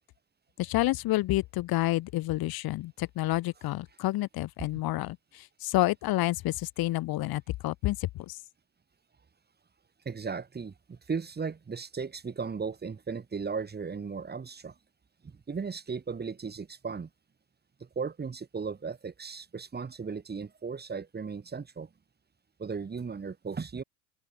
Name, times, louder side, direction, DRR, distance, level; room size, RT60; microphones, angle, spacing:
voice 1, 0.6-8.4, left 17 dB, 60° left, 5.5 m, -29 dB
voice 2, 10.1-14.7 15.2-17.1 18.0-21.9 22.6-23.8, right 5 dB, 25° right, 5.6 m, -36 dB
open air
supercardioid pair, 100°, 41 cm